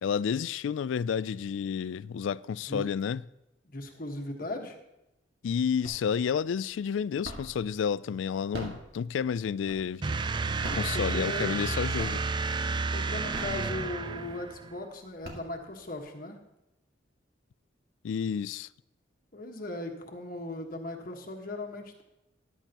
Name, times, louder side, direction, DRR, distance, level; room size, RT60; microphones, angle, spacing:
voice 1, 0.0-3.2 5.4-10.2 10.7-12.2 18.0-18.7, left 7 dB, 80° left, 0.3 m, -30 dB
voice 2, 3.6-4.8 10.6-11.6 12.9-16.4 19.3-22.0, left 1 dB, 45° left, 1.4 m, -38 dB
sound 1, 5.8-6.3 6.7-7.7 8.3-10.1 10.5-11.7 12.0-12.5 13.1-14.2 14.7-14.8 15.1-16.0, right 1 dB, 55° right, 1.9 m, -41 dB
sound 2, 10.0-14.7, right 4 dB, 25° right, 0.3 m, -31 dB
14.0 x 11.5 x 2.9 m
head